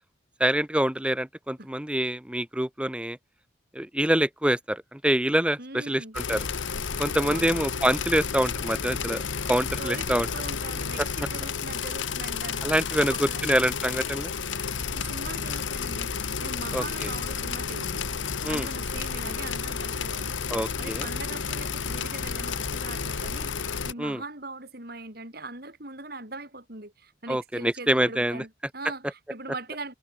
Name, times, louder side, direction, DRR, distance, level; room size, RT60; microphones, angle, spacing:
voice 1, 0.4-3.2 3.7-6.4 7.0-9.2 9.5-10.3 12.6-14.3 16.7-17.1 18.4-18.7 20.5-21.1 24.0-24.2 27.3-28.4, right 1 dB, 5° right, 0.9 m, -26 dB
voice 2, 5.6-6.2 7.2-7.5 9.3-12.7 13.0-13.6 14.6-18.1 18.5-20.4 20.8-29.9, right 2 dB, 55° right, 6.3 m, -41 dB
sound 1, 6.1-23.9, left 6 dB, 85° left, 1.3 m, -31 dB
head